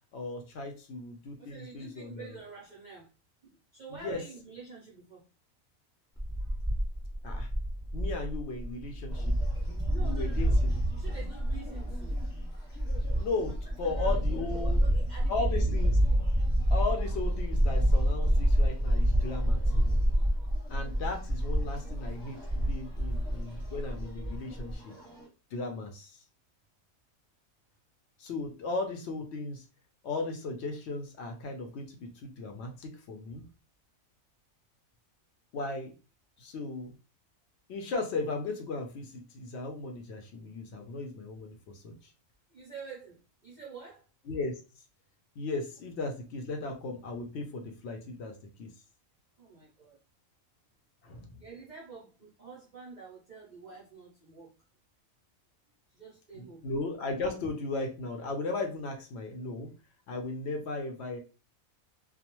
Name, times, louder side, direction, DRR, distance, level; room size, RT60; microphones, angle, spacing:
voice 1, 0.1-2.4 3.9-4.2 7.2-7.5 7.9-9.3 10.0-10.7 13.2-14.8 15.3-16.0 16.7-20.0 20.7-24.9 25.5-26.2 28.2-29.6 30.0-33.5 35.5-35.9 36.4-36.9 37.7-42.1 44.3-44.5 45.4-48.3 48.6-48.7 51.0-51.4 56.3-59.7 60.1-61.2, left 3 dB, 65° left, 4 dB, 0.7 m, -36 dB
voice 2, 1.4-3.1 3.4-5.3 6.4-6.6 9.9-10.6 10.9-12.2 13.4-13.6 13.8-15.8 23.0-23.2 23.6-23.7 42.5-44.0 49.4-50.0 51.4-54.5 55.9-56.7, right 5 dB, 55° right, -5 dB, 0.5 m, -48 dB
sound 1, 6.2-24.7, equal, 5° right, 0.4 m, -28 dB
sound 2, 9.1-25.3, left 1 dB, 20° left, 1.0 m, -52 dB
2.3 x 2.1 x 2.9 m, 0.32 s
omnidirectional pair, 1.4 m